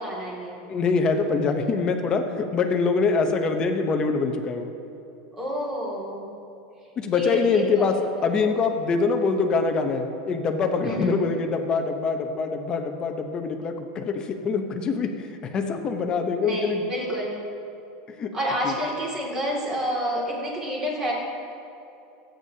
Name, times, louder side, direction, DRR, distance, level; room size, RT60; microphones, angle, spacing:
voice 1, 0.0-0.6 5.3-6.3 7.1-7.9 8.3-8.5 10.8-11.3 16.4-17.4 18.3-21.1, equal, 15° right, -4 dB, 2.3 m, -29 dB
voice 2, 0.7-4.7 7.0-16.8 18.2-18.3 18.6-18.7, left 4 dB, 20° left, 5 dB, 0.8 m, -24 dB
24.5 x 9.0 x 2.8 m, 2.7 s
supercardioid pair, 175°, 4 cm